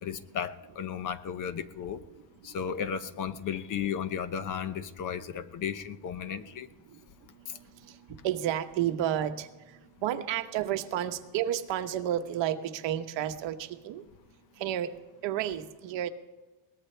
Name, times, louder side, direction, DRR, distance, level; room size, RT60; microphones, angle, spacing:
voice 1, 0.0-2.0 2.4-6.7, left 7 dB, 40° left, 12 dB, 0.8 m, -34 dB
voice 2, 8.2-9.5 10.0-13.6 13.8-14.0 14.6-14.9 15.2-16.1, right 11 dB, 65° right, 7 dB, 1.2 m, -30 dB
22.0 x 19.0 x 3.4 m, 1.1 s
cardioid pair, 165°, 48 cm